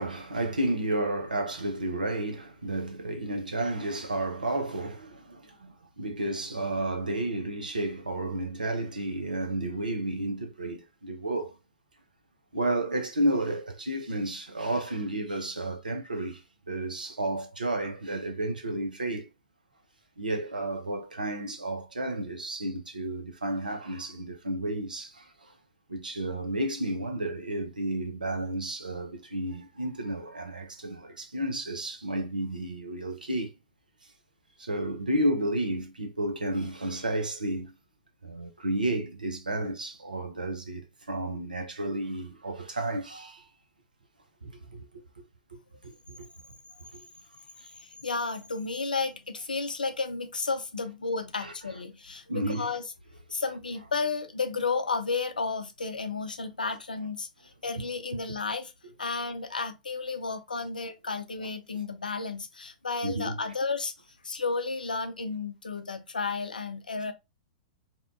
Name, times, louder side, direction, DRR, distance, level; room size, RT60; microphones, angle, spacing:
voice 1, 0.0-11.6 12.5-19.3 20.2-25.5 25.9-33.5 34.6-37.7 38.2-43.5 44.4-45.0 45.5-46.3 46.9-47.1 47.6-47.7 51.4-51.5 52.3-52.7 58.8-58.9 61.4-61.5 63.0-63.4, right 1 dB, 80° right, 0.6 m, -32 dB
voice 2, 47.8-52.8 53.3-57.3 57.6-58.7 59.0-63.9 64.2-67.1, left 4 dB, 80° left, 0.4 m, -32 dB
2.8 x 2.2 x 2.4 m
figure-of-eight pair, 105°, 4 cm